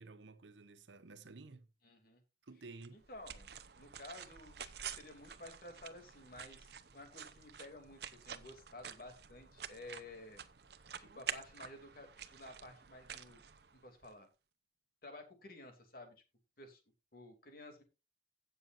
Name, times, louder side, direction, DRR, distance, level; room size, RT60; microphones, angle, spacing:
voice 1, 0.0-1.7 2.4-3.0, right 3 dB, 90° right, 0.9 m, -53 dB
voice 2, 1.8-2.2 2.9-10.4 11.0-13.4 13.7-14.3 15.0-16.2 16.6-16.8 17.1-17.8, left 2 dB, 55° left, 2.7 m, -53 dB
sound 1, 2.8-14.1, right 8 dB, 65° right, 0.7 m, -49 dB
16.5 x 6.8 x 2.6 m
head